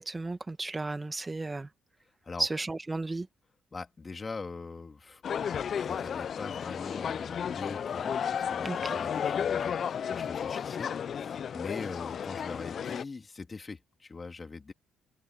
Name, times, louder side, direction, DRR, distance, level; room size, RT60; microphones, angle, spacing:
voice 1, 0.0-1.7 2.4-3.3 8.6-9.0, right 2 dB, 25° right, 2.1 m, -34 dB
voice 2, 3.7-5.2 5.6-14.7, left 4 dB, 35° left, 3.6 m, -42 dB
sound 1, 5.2-13.0, left 8 dB, 55° left, 0.7 m, -33 dB
open air
hypercardioid pair, 55°, 0 cm